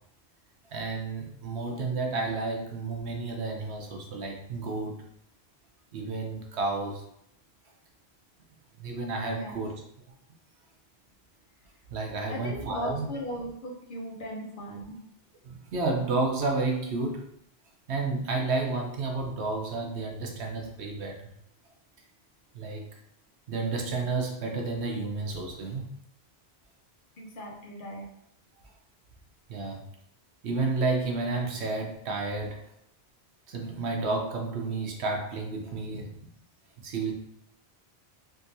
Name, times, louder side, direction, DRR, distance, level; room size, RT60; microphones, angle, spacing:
voice 1, 0.7-5.0 5.9-7.0 8.8-9.7 11.9-13.1 15.4-17.2 17.9-21.2 22.5-22.8 23.5-25.9 29.5-29.8 30.4-32.6 33.5-36.2 36.8-37.1, right 3 dB, 85° right, 1 dB, 1.0 m, -31 dB
voice 2, 9.3-9.7 12.3-15.0 27.2-28.1, equal, 55° left, -2 dB, 0.9 m, -38 dB
3.6 x 2.7 x 2.6 m, 0.72 s
omnidirectional pair, 1.1 m